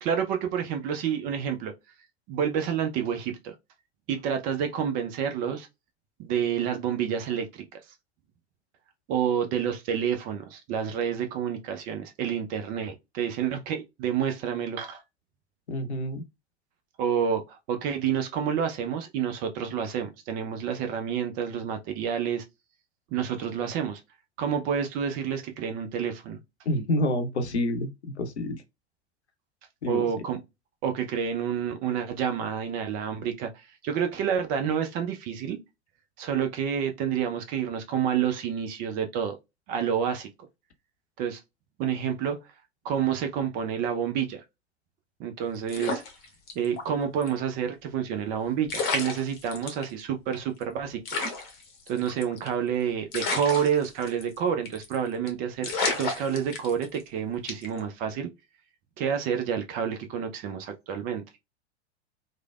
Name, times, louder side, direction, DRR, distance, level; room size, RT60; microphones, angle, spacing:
voice 1, 0.0-1.7 2.3-3.5 4.1-5.7 6.2-7.6 9.1-15.0 17.0-22.4 23.1-24.0 24.4-26.4 29.9-30.4 30.8-35.6 36.2-39.3 39.7-40.3 41.2-41.4 41.8-42.4 42.8-44.4 45.2-46.0 46.6-51.0 51.9-58.3 59.0-61.2, right 8 dB, 25° right, 0.4 m, -29 dB
voice 2, 15.7-16.2 26.7-27.9 28.2-28.6 29.8-30.1, left 1 dB, 75° left, 0.7 m, -28 dB
sound 1, 45.7-46.9 47.2-47.3 48.3-48.4 48.7-49.8 50.3-50.4 50.6-50.7 51.0-52.6 53.1-54.4 54.6-54.9 55.3-55.4 55.6-57.0 57.5-57.8, left 3 dB, 30° left, 0.9 m, -31 dB
3.1 x 2.0 x 2.3 m
figure-of-eight pair, 90°, 34 cm